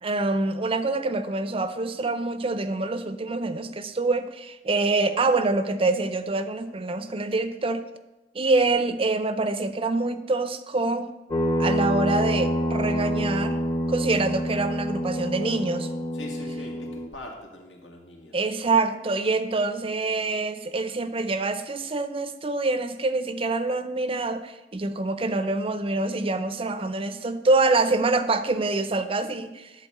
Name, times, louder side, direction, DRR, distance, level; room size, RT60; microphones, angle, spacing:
voice 1, 0.0-7.8 8.3-11.1 11.6-13.6 13.9-15.9 18.3-29.7, right 3 dB, 30° right, 11 dB, 0.5 m, -25 dB
sound 1, 11.3-17.1, equal, 25° left, 0.9 m, -27 dB
voice 2, 16.1-18.5, left 2 dB, 85° left, 0 dB, 2.1 m, -42 dB
10.5 x 4.0 x 7.5 m, 1.0 s
head